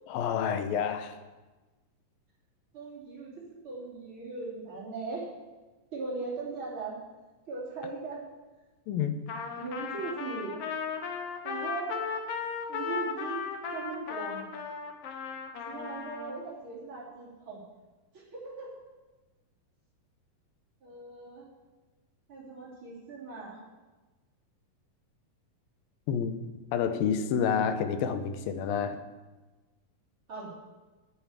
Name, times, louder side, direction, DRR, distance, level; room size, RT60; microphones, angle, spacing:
voice 1, 0.1-1.2 8.9-9.2 26.1-26.3 26.7-29.0, left 7 dB, 85° left, 9 dB, 2.6 m, -29 dB
voice 2, 2.7-5.3 5.9-7.0 7.5-8.2 9.6-10.6 11.4-12.0 12.7-14.4 15.7-17.6 18.1-18.8 20.8-21.4 22.3-23.6 30.3-30.5, right 4 dB, 35° right, -6 dB, 3.8 m, -39 dB
Trumpet, 9.3-16.4, left 6 dB, 65° left, 1.6 m, -36 dB
9.4 x 9.1 x 8.7 m, 1.2 s
omnidirectional pair, 4.0 m